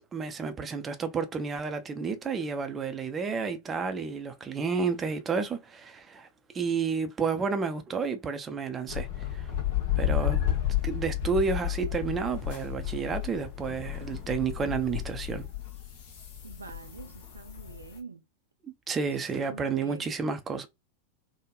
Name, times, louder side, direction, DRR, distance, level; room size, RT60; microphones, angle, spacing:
voice 1, 0.1-6.3 6.5-9.5 10.0-10.4 10.8-15.5 18.6-20.7, right 5 dB, 20° right, 0.5 m, -31 dB
sound 1, 8.9-18.0, left 12 dB, 50° left, 1.0 m, -32 dB
voice 2, 16.4-18.2 19.2-20.1, right 3 dB, 80° right, 0.3 m, -45 dB
3.4 x 2.1 x 2.3 m
figure-of-eight pair, 90°, 0 cm